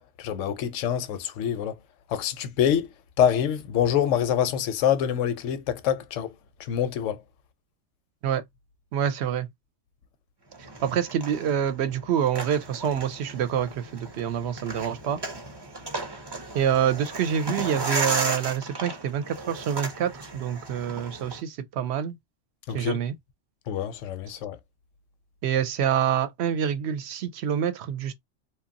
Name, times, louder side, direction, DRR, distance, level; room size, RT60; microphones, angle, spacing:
voice 1, 0.0-1.7 2.1-2.9 3.2-6.3 6.7-7.2 22.7-23.0 23.7-24.6, left 9 dB, 90° left, 0.9 m, -25 dB
voice 2, 8.9-9.5 10.8-15.2 16.5-22.2 22.7-23.1 25.4-28.1, right 9 dB, 70° right, 0.8 m, -26 dB
sound 1, 10.5-21.4, right 3 dB, 30° right, 0.4 m, -35 dB
2.9 x 2.3 x 2.5 m
omnidirectional pair, 1.2 m